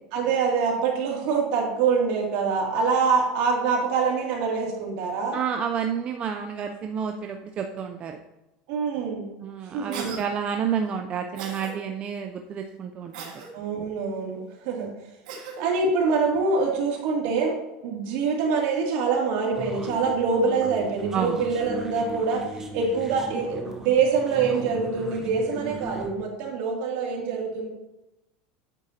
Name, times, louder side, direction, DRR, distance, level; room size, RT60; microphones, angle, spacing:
voice 1, 0.1-5.4 8.7-9.3 9.7-10.2 13.5-14.9 15.6-17.6 17.8-27.7, right 5 dB, 65° right, -1 dB, 2.5 m, -25 dB
voice 2, 5.3-8.2 9.4-13.3 21.1-21.4, right 7 dB, 35° right, 4 dB, 0.5 m, -30 dB
Cough, 9.9-10.2 11.4-11.7 13.1-13.5 15.3-15.6, right 5 dB, 85° right, 1.8 m, -37 dB
sound 1, 19.5-26.1, right 2 dB, 15° right, 1.0 m, -38 dB
8.9 x 7.4 x 2.8 m, 0.93 s
supercardioid pair, 135°, 4 cm